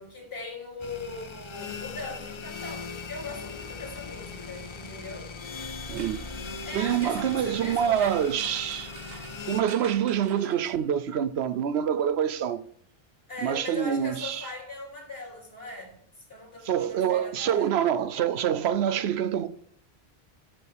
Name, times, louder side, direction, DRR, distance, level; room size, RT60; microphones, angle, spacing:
voice 1, 0.0-5.3 6.6-8.2 13.3-17.7, left 2 dB, 65° left, 3.3 m, -40 dB
sound 1, 0.8-9.6, left 4 dB, 35° left, 0.5 m, -39 dB
sound 2, 5.4-11.1, right 5 dB, 70° right, 1.2 m, -48 dB
voice 2, 5.9-6.2 6.7-8.9 9.5-12.6 13.4-14.4 16.6-19.5, right 9 dB, 85° right, 0.9 m, -26 dB
12.5 x 6.1 x 3.4 m
omnidirectional pair, 1.1 m